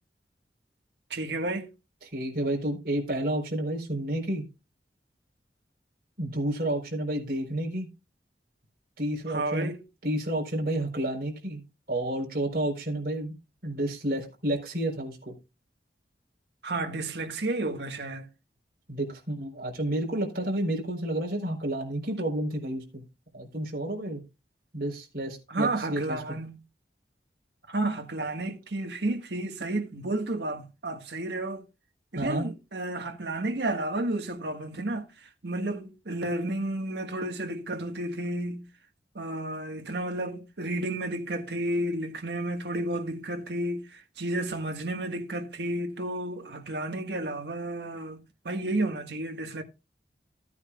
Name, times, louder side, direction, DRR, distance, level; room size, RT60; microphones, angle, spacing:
voice 1, 1.1-1.7 9.3-9.8 16.6-18.3 25.5-26.6 27.7-31.6 32.1-35.1 35.4-38.6 39.1-49.6, right 2 dB, 75° right, 1.6 m, -31 dB
voice 2, 2.0-4.4 6.2-7.9 9.0-9.7 10.0-11.6 11.9-13.3 13.6-15.4 18.9-23.0 23.3-24.2 24.7-26.4 32.2-32.5, right 1 dB, 55° right, 4.1 m, -30 dB
15.5 x 9.4 x 2.4 m
head